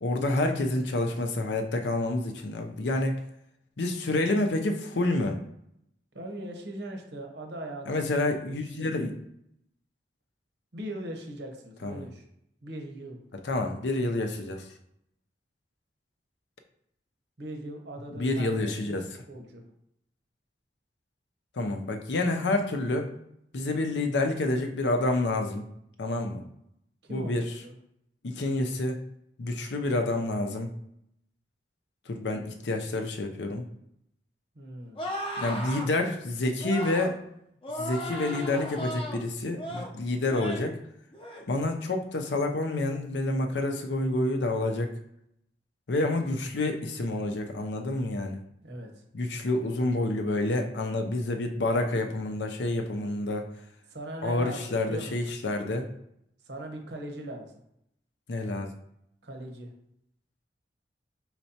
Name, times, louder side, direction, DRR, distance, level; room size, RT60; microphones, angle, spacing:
voice 1, 0.0-3.2 3.8-5.4 7.9-9.1 11.8-12.0 13.4-14.6 18.2-19.1 21.6-23.1 23.5-25.7 26.0-26.4 27.1-27.4 28.2-29.0 29.4-30.7 32.1-33.7 35.4-37.2 37.8-40.8 41.5-44.9 45.9-48.4 49.1-53.5 54.2-55.9 58.3-58.7, left 2 dB, 80° left, 4 dB, 0.6 m, -28 dB
voice 2, 6.1-8.5 9.0-9.1 10.7-12.2 12.6-13.2 17.4-18.9 19.3-19.6 27.0-27.7 34.5-35.0 48.6-49.0 53.9-55.4 56.4-57.6 59.2-59.7, right 1 dB, 75° right, 3 dB, 0.9 m, -40 dB
sound 1, 35.0-35.9 36.6-37.1 37.6-39.2 39.6-39.9 40.3-40.7 41.1-41.4, equal, 30° left, 0.7 m, -35 dB
4.5 x 4.0 x 2.8 m, 0.76 s
head